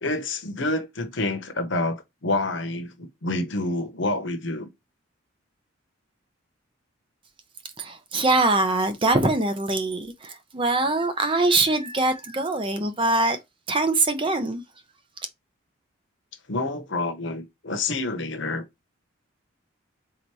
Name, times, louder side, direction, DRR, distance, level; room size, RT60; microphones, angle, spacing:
voice 1, 0.0-4.7 16.5-18.6, left 2 dB, 60° left, 1.0 m, -28 dB
voice 2, 7.8-13.4 13.7-14.6, right 2 dB, 25° right, 0.7 m, -23 dB
4.0 x 2.9 x 4.7 m
head